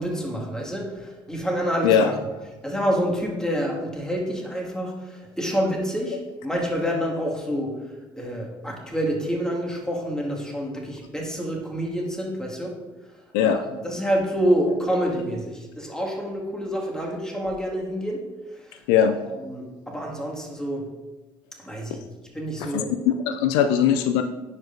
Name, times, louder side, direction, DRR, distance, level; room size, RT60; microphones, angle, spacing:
voice 1, 0.0-2.1 2.6-12.7 13.4-18.8 19.2-20.9 21.6-22.9, equal, 5° left, -1 dB, 2.0 m, -28 dB
voice 2, 22.7-24.2, left 8 dB, 75° left, 9 dB, 0.4 m, -20 dB
10.5 x 5.0 x 2.6 m, 1.2 s
hypercardioid pair, 60°, 12 cm